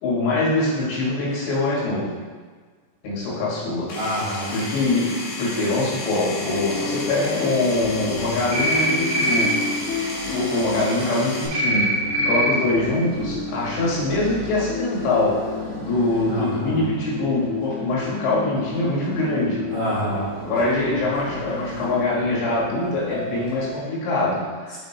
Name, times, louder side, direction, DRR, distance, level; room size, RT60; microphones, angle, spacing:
voice 1, 0.0-2.1 3.0-3.9 4.5-9.6 10.3-15.4 15.8-19.7 20.4-24.8, left 2 dB, 90° left, -6 dB, 3.9 m, -23 dB
Power tool, 3.9-11.5, left 2 dB, 70° left, 2.6 m, -33 dB
voice 2, 3.9-4.5 16.3-16.8 19.7-20.3, equal, 90° right, -10 dB, 1.3 m, -27 dB
sound 1, 6.4-23.7, left 3 dB, 50° left, 1.3 m, -32 dB
sound 2, 8.5-8.9 9.1-9.5 11.5-11.8 12.1-12.4, right 1 dB, 65° right, 1.8 m, -21 dB
7.7 x 4.6 x 2.8 m, 1.5 s
omnidirectional pair, 5.1 m